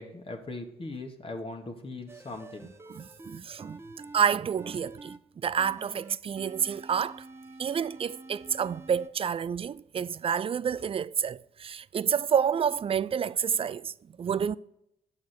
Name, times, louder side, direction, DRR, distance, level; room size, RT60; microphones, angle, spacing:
voice 1, 0.0-2.7, left 2 dB, 30° left, 1.5 m, -39 dB
sound 1, 2.1-5.2 5.6-9.1, right 2 dB, 15° right, 0.8 m, -48 dB
voice 2, 2.9-3.8 4.1-7.2 7.6-14.6, right 7 dB, 35° right, 0.4 m, -29 dB
8.4 x 6.5 x 4.4 m
supercardioid pair, 55°, 17 cm